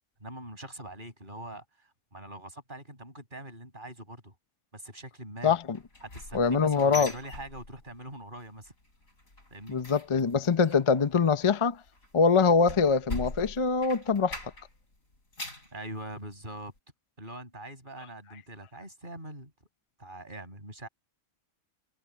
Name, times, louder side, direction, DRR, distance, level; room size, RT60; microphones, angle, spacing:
voice 1, 0.2-4.3 4.7-5.6 6.0-8.7 9.5-9.8 15.7-16.7 17.2-19.5 20.0-20.9, right 1 dB, 35° right, 7.9 m, -43 dB
voice 2, 5.4-5.8 6.3-7.1 9.7-11.8 12.1-14.4, left 5 dB, 30° left, 0.7 m, -24 dB
sound 1, 5.7-8.1 8.4-8.7 9.0-14.8 15.1-15.7 16.2-16.3 16.8-16.9, left 2 dB, 75° left, 6.2 m, -41 dB
omnidirectional pair, 1.4 m